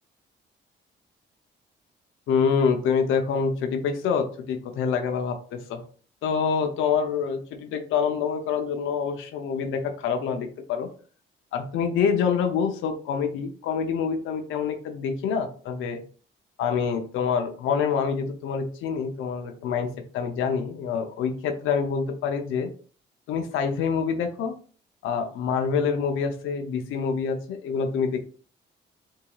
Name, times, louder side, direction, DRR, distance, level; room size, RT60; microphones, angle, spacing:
voice 1, 2.3-5.8 6.2-10.9 11.5-16.0 16.6-22.7 23.3-24.5 25.0-28.2, left 6 dB, 90° left, 5 dB, 0.6 m, -26 dB
4.7 x 2.7 x 2.3 m, 0.41 s
cardioid pair, 90°, 20 cm